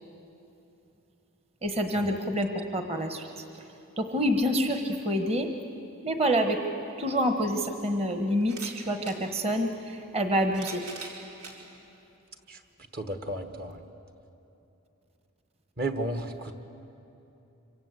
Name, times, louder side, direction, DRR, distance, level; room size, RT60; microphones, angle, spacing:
voice 1, 1.6-3.4 4.0-5.5 6.0-6.6 7.0-10.8, equal, 25° right, 5 dB, 1.3 m, -27 dB
sound 1, 8.4-9.2 10.2-11.6 12.3-12.4 13.7-13.8, right 4 dB, 90° right, 4.5 m, -42 dB
voice 2, 12.9-13.8 15.8-16.5, right 1 dB, 45° right, 7 dB, 1.4 m, -33 dB
26.0 x 25.0 x 8.3 m, 2.9 s
head